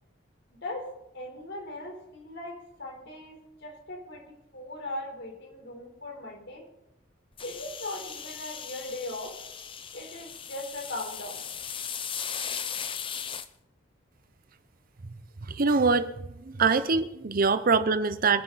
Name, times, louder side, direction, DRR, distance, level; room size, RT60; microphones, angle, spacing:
voice 1, 0.5-6.6 7.4-9.4 9.9-11.5, left 1 dB, 60° left, 2 dB, 4.0 m, -39 dB
sound 1, 7.4-13.5, left 7 dB, 25° left, 0.7 m, -37 dB
voice 2, 15.4-16.1 16.4-18.4, right 4 dB, 45° right, 12 dB, 0.7 m, -24 dB
25.0 x 10.0 x 4.1 m, 0.89 s
head